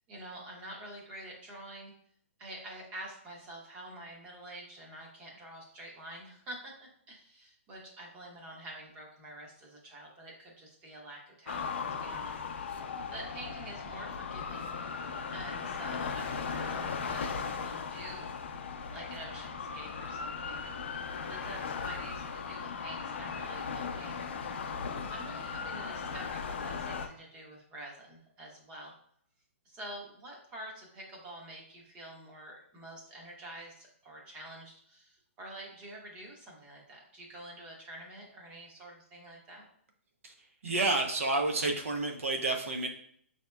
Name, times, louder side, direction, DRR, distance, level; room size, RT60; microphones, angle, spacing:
voice 1, 0.1-1.9 2.4-18.3 18.9-20.7 21.2-24.3 25.1-28.9 29.6-39.6, right 1 dB, 15° right, -1 dB, 0.8 m, -47 dB
sound 1, 11.5-27.1, left 5 dB, 55° left, 0.5 m, -37 dB
voice 2, 40.6-42.9, right 2 dB, 75° right, 3 dB, 0.7 m, -30 dB
6.2 x 2.8 x 2.2 m, 0.63 s
hypercardioid pair, 170°, 7 cm